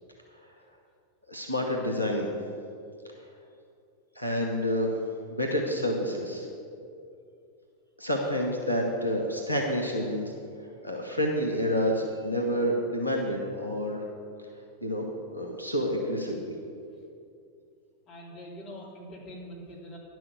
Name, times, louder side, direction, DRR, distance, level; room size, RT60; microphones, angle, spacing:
voice 1, 1.3-2.3 4.1-4.9 5.3-6.5 8.0-10.3 10.8-14.0 14.8-16.5, equal, 90° left, 1 dB, 1.0 m, -28 dB
voice 2, 18.1-20.0, equal, 35° left, -3 dB, 2.7 m, -43 dB
10.5 x 6.2 x 7.0 m, 2.4 s
figure-of-eight pair, 90°, 0 cm